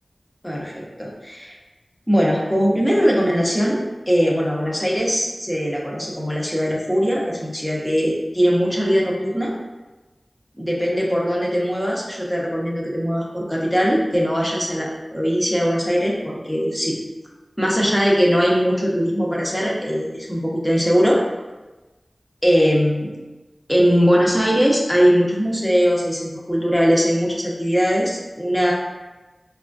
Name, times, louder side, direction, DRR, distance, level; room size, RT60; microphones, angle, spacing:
voice 1, 0.4-1.6 2.1-9.5 10.6-17.0 17.6-21.2 22.4-23.1 23.7-28.7, equal, 5° left, -3 dB, 0.8 m, -20 dB
4.8 x 2.3 x 2.5 m, 1.1 s
wide cardioid pair, 50°, 0 cm